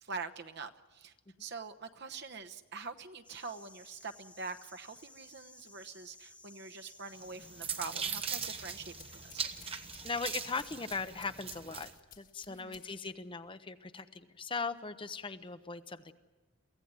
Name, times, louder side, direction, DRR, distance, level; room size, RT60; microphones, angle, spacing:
voice 1, 0.0-1.1 1.4-9.4 12.5-12.8, right 4 dB, 50° right, 7 dB, 1.0 m, -44 dB
sound 1, 3.2-10.8, left 2 dB, 5° left, 1.3 m, -57 dB
sound 2, 7.2-11.9, right 6 dB, 25° right, 1.0 m, -40 dB
sound 3, 8.1-13.1, left 9 dB, 40° left, 1.5 m, -58 dB
voice 2, 10.0-11.9 12.2-16.1, left 4 dB, 25° left, 11 dB, 0.7 m, -39 dB
24.0 x 16.0 x 9.6 m, 1.3 s
head